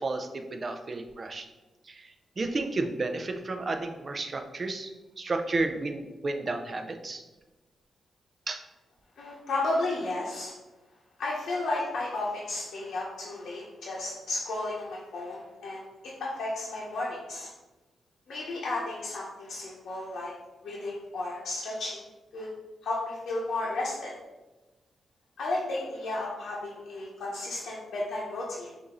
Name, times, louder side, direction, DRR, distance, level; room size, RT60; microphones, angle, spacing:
voice 1, 0.0-1.5 1.9-4.9 5.2-7.2 8.5-8.6, right 3 dB, 40° right, 6 dB, 0.4 m, -32 dB
voice 2, 9.2-10.5 11.2-17.5 18.3-20.3 20.6-22.0 22.3-22.5 22.8-24.1 25.4-28.7, left 2 dB, 75° left, -5 dB, 0.8 m, -33 dB
6.1 x 2.6 x 3.0 m, 1.1 s
cardioid pair, 105°, 0 cm